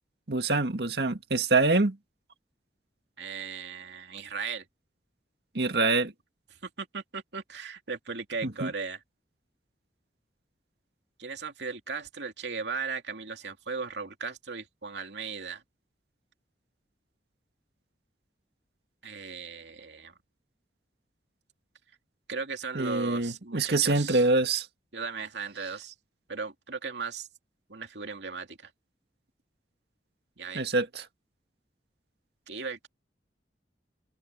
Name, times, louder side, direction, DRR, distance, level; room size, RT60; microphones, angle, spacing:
voice 1, 0.3-2.0 5.6-6.1 8.4-8.7 22.8-24.7 30.6-31.0, right 3 dB, 65° right, 1.9 m, -25 dB
voice 2, 3.2-4.7 5.7-5.9 6.6-9.0 11.2-15.6 19.0-20.1 22.3-24.3 24.9-25.9 26.3-27.3 27.7-28.7 30.4-30.6 32.5-32.9, right 5 dB, 80° right, 2.5 m, -37 dB
head